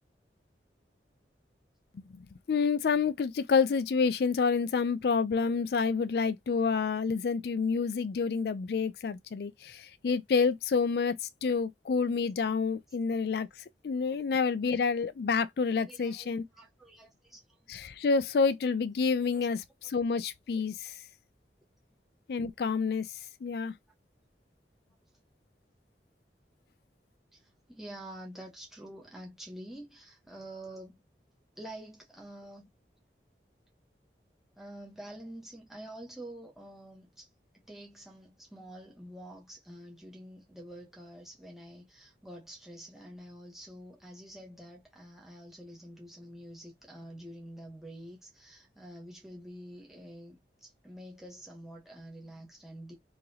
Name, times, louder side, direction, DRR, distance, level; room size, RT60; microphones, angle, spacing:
voice 1, 1.9-13.5 13.8-16.4 17.7-19.6 19.9-20.9 22.3-23.1 23.4-23.7, left 5 dB, 65° left, 0.4 m, -28 dB
voice 2, 15.8-17.6 19.4-19.5 27.3-31.0 31.6-32.7 34.6-37.3 37.5-52.9, right 1 dB, ahead, 1.1 m, -47 dB
3.8 x 2.9 x 2.8 m
head